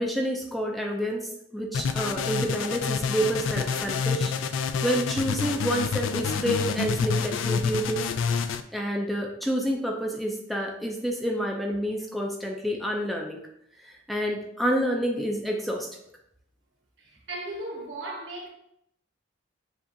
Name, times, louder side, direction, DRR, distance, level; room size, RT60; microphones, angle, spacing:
voice 1, 0.0-4.3 4.8-8.1 8.7-13.4 13.8-15.9, equal, ahead, 0.4 m, -28 dB
sound 1, 1.7-8.6, left 5 dB, 80° left, 0.3 m, -28 dB
voice 2, 17.0-18.5, right 1 dB, 70° right, 1.1 m, -36 dB
7.0 x 2.4 x 2.7 m
head